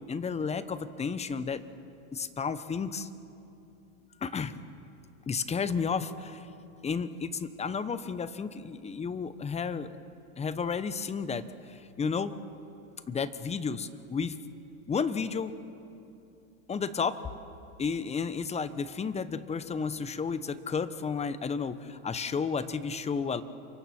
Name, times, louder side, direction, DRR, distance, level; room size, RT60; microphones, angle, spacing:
voice 1, 0.1-1.6 2.1-3.1 4.2-4.5 5.3-6.5 6.8-9.9 10.4-12.3 13.1-14.4 14.9-15.6 16.7-17.3 17.8-23.4, left 5 dB, 15° left, 13 dB, 0.9 m, -32 dB
29.5 x 24.0 x 4.5 m, 2.7 s
hypercardioid pair, 115°, 42 cm